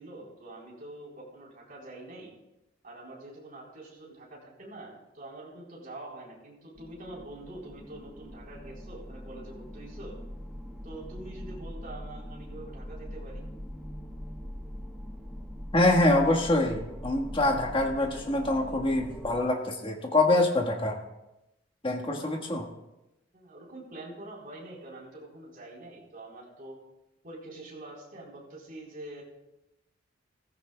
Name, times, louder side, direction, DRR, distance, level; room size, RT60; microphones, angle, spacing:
voice 1, 0.0-2.3 2.8-10.2 10.8-13.5 22.2-22.5 23.3-26.8 27.2-29.2, right 2 dB, 50° right, -3 dB, 3.9 m, -45 dB
sound 1, 6.8-19.4, equal, ahead, 1.1 m, -42 dB
voice 2, 15.7-21.0 21.8-22.7, left 2 dB, 30° left, 2 dB, 1.4 m, -25 dB
16.5 x 15.0 x 2.3 m, 0.94 s
head